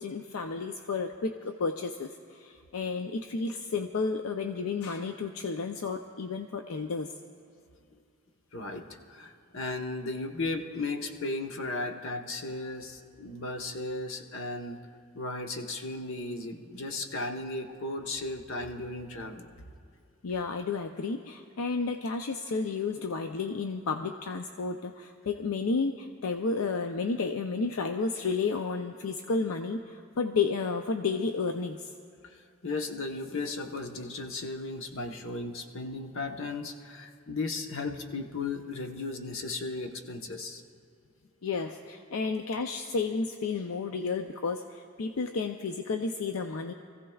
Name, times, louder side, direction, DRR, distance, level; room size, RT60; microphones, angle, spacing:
voice 1, 0.0-7.1 20.2-31.9 41.4-46.7, left 4 dB, 85° left, 5 dB, 0.5 m, -32 dB
voice 2, 8.5-14.8 15.1-19.5 32.2-40.6, left 3 dB, 65° left, 3 dB, 1.1 m, -35 dB
26.0 x 15.5 x 2.3 m, 2.4 s
head